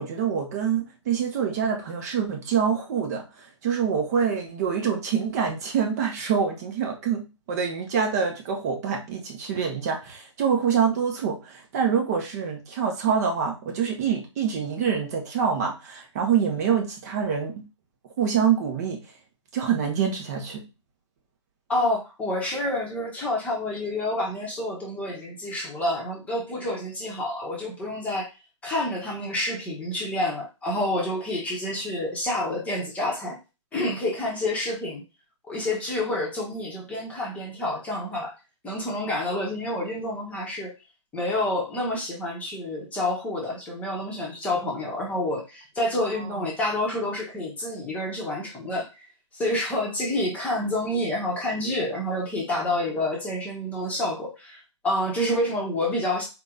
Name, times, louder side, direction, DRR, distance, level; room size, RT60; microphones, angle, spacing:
voice 1, 0.0-17.6 18.2-19.1 19.5-20.6 46.2-46.5, right 7 dB, 30° right, 2 dB, 0.9 m, -26 dB
voice 2, 21.7-28.3 28.6-33.4 33.7-35.0 35.5-38.3 38.6-40.7 41.1-48.9 49.3-56.3, left 1 dB, 10° left, -2 dB, 1.0 m, -28 dB
4.2 x 2.9 x 3.7 m, 0.28 s
figure-of-eight pair, 130°, 16 cm